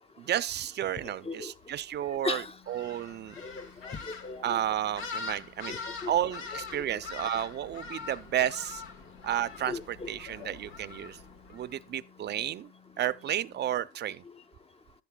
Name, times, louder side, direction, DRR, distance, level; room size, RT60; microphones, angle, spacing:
voice 1, 0.2-3.4 4.4-5.8 6.1-8.8 9.2-11.2 11.5-12.7 13.0-14.2, right 11 dB, 60° right, 0.5 m, -32 dB
voice 2, 1.0-1.5 2.2-2.5 3.4-4.6 5.7-6.1 6.5-6.6 6.9-7.0 9.7-10.1 10.4-10.6, left 4 dB, 30° left, 0.7 m, -38 dB
sound 1, 2.3-13.7, left 7 dB, 55° left, 1.9 m, -60 dB
sound 2, 2.6-11.7, left 5 dB, 85° left, 1.3 m, -43 dB
11.0 x 8.2 x 2.2 m
cardioid pair, 90°, 20 cm